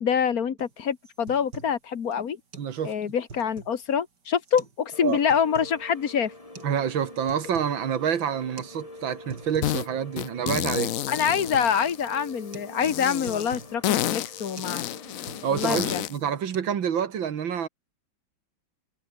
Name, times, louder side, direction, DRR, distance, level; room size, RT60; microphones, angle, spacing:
voice 1, 0.0-2.4 2.8-6.3 11.1-14.9 15.5-16.0, left 7 dB, 50° left, 1.7 m, -26 dB
sound 1, 0.6-0.7 1.0-1.8 2.1-2.2 2.5-2.7 3.1-3.9 4.4-4.8 5.1-5.8 6.5-6.7 7.1-7.8 8.1-8.2 8.6-8.7 9.1-9.8 10.1-10.2 10.6-10.8 11.0-11.8 12.1-12.3 12.5-12.7 13.0-13.7 14.1-14.3 14.6-14.8 15.1-15.9 16.2-16.6, right 4 dB, 60° right, 3.7 m, -44 dB
voice 2, 2.6-2.9 5.0-5.2 6.6-10.9 15.4-17.7, right 8 dB, 80° right, 2.4 m, -27 dB
sound 2, 4.9-15.9, left 1 dB, 15° left, 3.4 m, -46 dB
sound 3, 9.6-9.9 10.2-12.3 12.8-16.2, left 13 dB, 70° left, 0.8 m, -30 dB
omnidirectional pair, 2.1 m